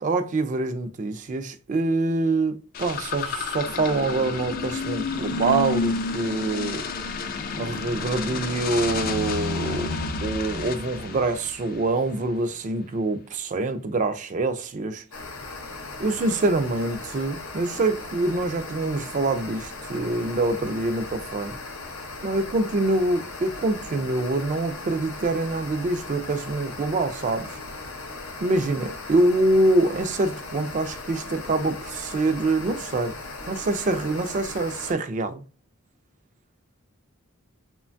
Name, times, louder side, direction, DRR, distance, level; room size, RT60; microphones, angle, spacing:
voice 1, 0.0-6.9 7.6-9.9 10.2-15.0 16.0-21.6 22.2-27.6 28.4-33.2 33.5-35.4, right 2 dB, 40° right, 0.4 m, -25 dB
sound 1, 2.7-12.3, left 3 dB, 45° left, 0.4 m, -30 dB
sound 2, 15.1-34.9, left 3 dB, 90° left, 0.8 m, -38 dB
3.1 x 2.2 x 2.5 m
head